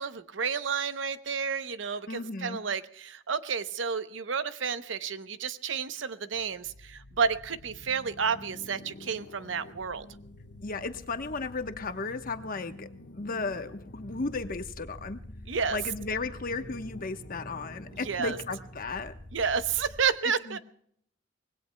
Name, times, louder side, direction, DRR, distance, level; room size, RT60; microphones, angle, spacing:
voice 1, 0.0-10.0 15.5-15.8 18.1-18.4 19.3-20.6, right 6 dB, 75° right, 12 dB, 0.8 m, -31 dB
voice 2, 2.1-2.6 10.6-15.2 15.7-19.1 20.2-20.6, left 3 dB, 50° left, 8 dB, 1.1 m, -35 dB
sound 1, 6.3-20.1, left 1 dB, 70° left, 1.3 m, -47 dB
25.0 x 20.0 x 2.2 m, 0.67 s
head